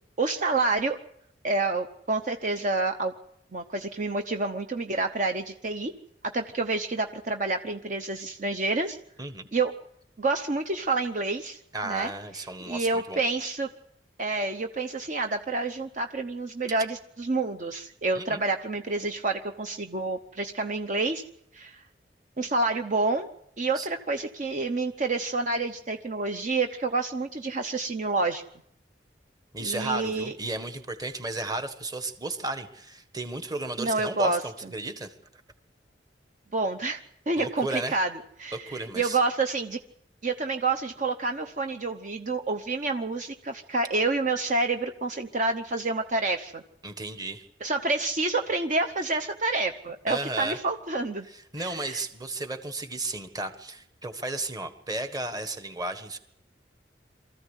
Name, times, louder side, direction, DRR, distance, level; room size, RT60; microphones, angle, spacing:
voice 1, 0.2-1.0 1.4-3.1 3.5-5.9 6.3-9.0 9.5-9.7 10.2-11.6 11.8-12.1 12.7-13.7 14.2-21.2 21.5-21.8 22.4-23.3 23.6-28.4 29.6-30.3 33.8-34.4 36.5-38.1 38.4-39.8 40.2-46.6 47.6-51.3 51.6-52.0, right 3 dB, 45° right, 6 dB, 0.9 m, -28 dB
voice 2, 9.2-9.5 11.7-13.2 18.1-18.4 23.7-23.9 29.5-35.4 37.4-38.0 38.5-39.2 46.8-47.4 50.1-50.6 51.3-56.2, right 2 dB, 20° right, 8 dB, 1.5 m, -34 dB
24.0 x 14.5 x 8.2 m, 0.76 s
head